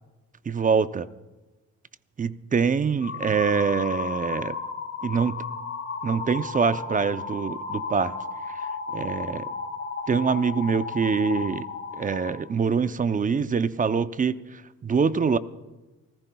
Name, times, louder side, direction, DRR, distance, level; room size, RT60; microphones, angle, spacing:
voice 1, 0.5-1.1 2.2-4.6 5.0-5.4 6.0-8.1 8.9-9.5 10.1-11.7 12.0-15.4, right 5 dB, 25° right, 13 dB, 0.6 m, -24 dB
sound 1, 3.0-12.3, left 4 dB, 45° left, 4.3 m, -34 dB
28.5 x 15.0 x 2.3 m, 1.1 s
cardioid pair, 90°, 30 cm